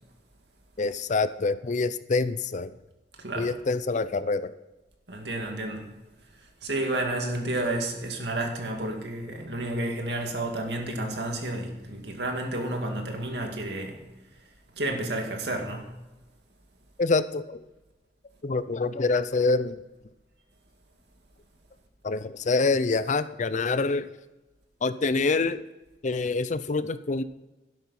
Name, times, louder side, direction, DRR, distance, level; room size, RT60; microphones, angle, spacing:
voice 1, 0.8-2.8 3.4-4.5 17.0-17.6 18.4-19.8 22.0-24.1 24.8-25.6 26.0-27.2, left 3 dB, 45° left, 0.5 m, -26 dB
voice 2, 3.1-3.6 5.1-5.9 6.2-14.0 14.3-15.9, right 1 dB, 70° right, 2.3 m, -31 dB
12.0 x 10.5 x 4.3 m
head